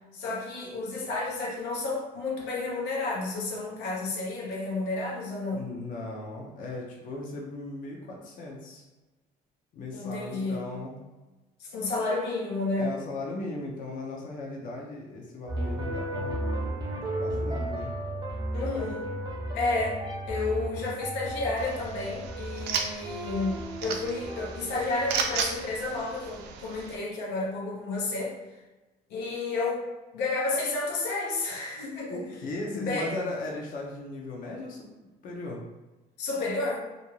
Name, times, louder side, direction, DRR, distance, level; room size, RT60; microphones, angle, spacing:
voice 1, 0.1-5.6 9.9-10.7 11.6-12.9 18.5-19.1 19.5-20.0 20.3-28.3 29.1-29.8 30.1-32.2 32.7-33.1 36.2-36.8, left 3 dB, 90° left, -3 dB, 0.7 m, -31 dB
voice 2, 5.5-8.8 9.7-10.9 12.8-16.4 16.9-17.9 32.1-34.9 35.2-35.6, left 2 dB, 55° left, -1 dB, 0.6 m, -37 dB
sound 1, 15.5-25.7, right 1 dB, 25° right, 0.6 m, -34 dB
sound 2, 21.6-27.0, right 6 dB, 85° right, 0.4 m, -35 dB
2.5 x 2.2 x 3.0 m, 1.1 s
cardioid pair, 110°, 17 cm